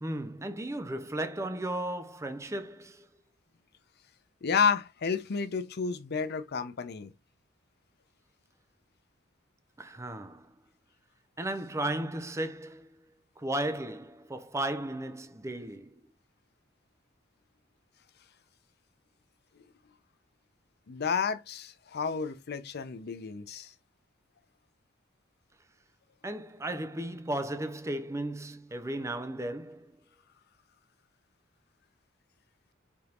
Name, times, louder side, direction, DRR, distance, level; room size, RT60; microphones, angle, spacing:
voice 1, 0.0-3.1 9.8-10.5 11.4-13.0 13.4-15.9 26.2-30.0, right 1 dB, 15° right, 0.5 m, -35 dB
voice 2, 4.4-7.1 20.9-23.7, left 5 dB, 55° left, 0.6 m, -31 dB
4.3 x 3.5 x 2.4 m
head